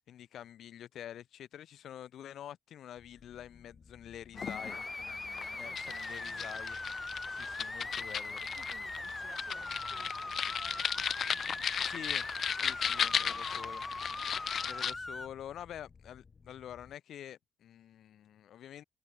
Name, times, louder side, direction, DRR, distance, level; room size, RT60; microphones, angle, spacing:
voice 1, 0.1-6.8 7.3-8.4 11.8-13.8 14.6-18.8, left 10 dB, 70° left, 2.0 m, -47 dB
sound 1, 3.0-16.9, left 5 dB, 30° left, 5.4 m, -58 dB
sound 2, 4.3-14.9, left 8 dB, 50° left, 1.2 m, -36 dB
sound 3, 4.4-15.3, left 2 dB, 15° left, 0.8 m, -41 dB
voice 2, 5.6-6.5 8.4-11.8 12.9-13.6, right 10 dB, 65° right, 7.8 m, -58 dB
cardioid pair, 140°, 0 cm